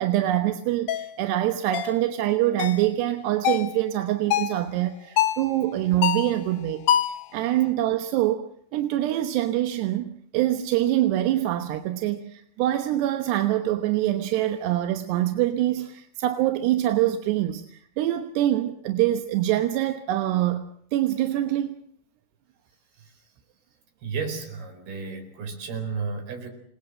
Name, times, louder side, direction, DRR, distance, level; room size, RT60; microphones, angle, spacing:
voice 1, 0.0-21.8, right 13 dB, 90° right, 3.3 m, -25 dB
sound 1, 0.9-1.1 1.7-2.0 2.6-2.9 3.5-3.7 4.3-4.6 5.2-5.5 6.0-6.4 6.9-7.2, left 11 dB, 70° left, 2.7 m, -24 dB
voice 2, 24.0-26.5, right 5 dB, 70° right, 6.3 m, -33 dB
28.5 x 19.5 x 7.6 m
omnidirectional pair, 4.7 m